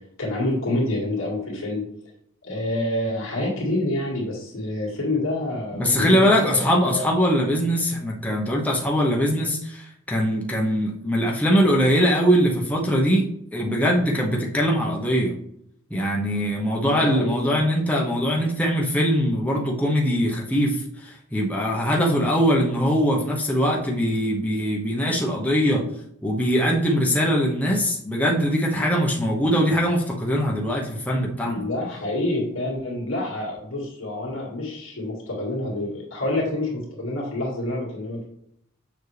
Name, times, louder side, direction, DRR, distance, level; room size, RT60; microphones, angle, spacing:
voice 1, 0.2-1.8 2.4-7.0 16.8-17.6 31.4-38.2, left 1 dB, 70° left, -4 dB, 2.0 m, -27 dB
voice 2, 5.7-13.3 13.5-15.3 15.9-25.8 26.2-31.6, equal, 5° left, -2 dB, 0.9 m, -22 dB
7.0 x 5.5 x 3.3 m, 0.75 s
head